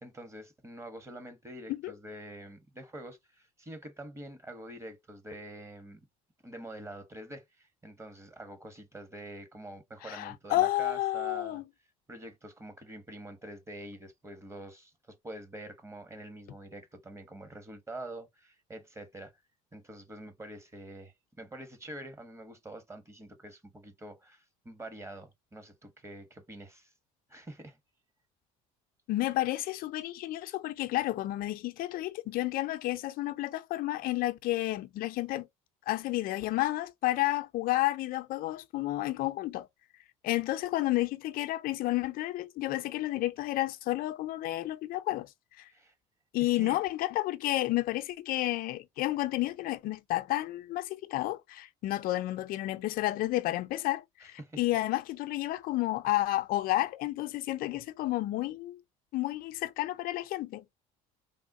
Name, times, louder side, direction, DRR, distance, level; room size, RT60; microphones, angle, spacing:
voice 1, 0.0-6.0 6.4-11.6 12.1-19.3 19.7-26.9 27.3-27.8 45.7-45.9 46.4-46.8 54.4-54.6, right 1 dB, 15° right, 1.0 m, -46 dB
voice 2, 10.0-11.7 29.1-35.5 35.9-39.7 40.2-45.3 45.6-45.7 46.3-58.8 59.1-60.6, left 16 dB, 60° left, 0.5 m, -31 dB
3.5 x 2.2 x 2.6 m
supercardioid pair, 80°, 17 cm